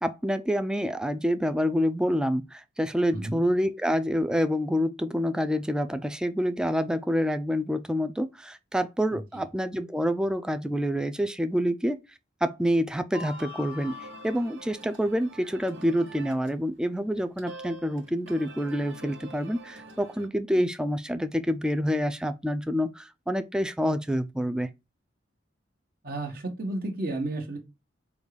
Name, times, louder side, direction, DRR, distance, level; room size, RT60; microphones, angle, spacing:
voice 1, 0.0-12.0 12.4-14.0 14.2-24.7, equal, 5° right, 0.3 m, -27 dB
voice 2, 9.1-9.5 26.0-27.6, right 2 dB, 55° right, 1.1 m, -32 dB
sound 1, 13.1-16.7 17.0-20.3, equal, 90° right, 1.3 m, -44 dB
5.2 x 2.4 x 3.2 m
head